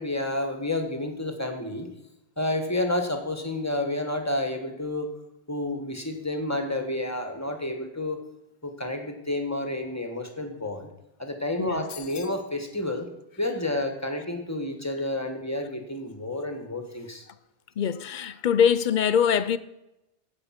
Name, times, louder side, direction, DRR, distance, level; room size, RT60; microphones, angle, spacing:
voice 1, 0.0-1.9 2.4-5.1 5.5-8.2 8.6-10.9 11.2-13.1 13.4-17.2, left 1 dB, 15° left, 1.4 m, -30 dB
sound 1, 11.9-12.5, left 9 dB, 80° left, 1.0 m, -43 dB
voice 2, 17.8-19.6, left 8 dB, 55° left, 0.6 m, -23 dB
15.5 x 5.5 x 5.8 m
omnidirectional pair, 1.1 m